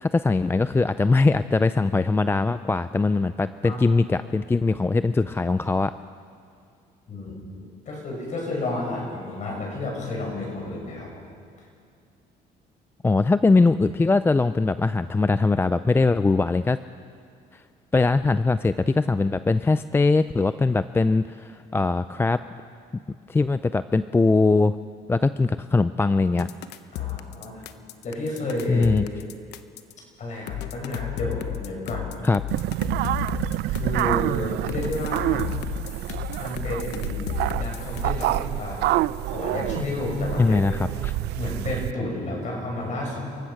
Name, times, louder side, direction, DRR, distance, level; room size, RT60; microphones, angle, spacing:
voice 1, 0.0-5.9 13.0-16.8 17.5-17.6 17.9-22.4 23.3-24.8 25.1-26.5 28.7-29.0 32.2-32.4 40.4-41.1, left 3 dB, 15° left, 13 dB, 0.4 m, -21 dB
voice 2, 7.1-7.4 7.9-11.2 26.9-27.7 28.0-28.9 30.2-32.1 33.7-35.5 36.4-37.3 37.5-38.9 39.2-40.6 41.4-43.2, left 2 dB, 45° left, -1 dB, 7.1 m, -31 dB
sound 1, 26.4-29.9 30.5-34.1 34.7-38.4, left 14 dB, 80° left, 0.9 m, -33 dB
sound 2, 32.5-41.9, right 16 dB, 80° right, 0.5 m, -27 dB
28.0 x 16.0 x 6.0 m, 2.3 s
cardioid pair, 110°, 17 cm